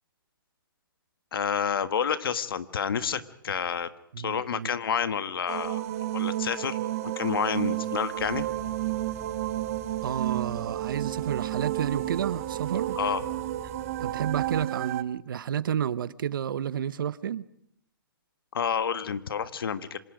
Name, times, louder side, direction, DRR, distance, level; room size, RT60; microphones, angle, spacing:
voice 1, 1.3-3.9 4.2-5.8 6.1-6.8 7.0-8.4 13.0-13.2 18.5-20.0, left 7 dB, 75° left, 1.6 m, -29 dB
voice 2, 4.1-4.7 10.0-13.0 14.0-17.5, right 9 dB, 65° right, 1.0 m, -30 dB
sound 1, 5.5-15.0, right 14 dB, 40° right, 1.1 m, -31 dB
sound 2, 8.2-14.7, right 1 dB, 10° right, 2.6 m, -47 dB
27.0 x 26.0 x 5.1 m
hypercardioid pair, 155°, 12 cm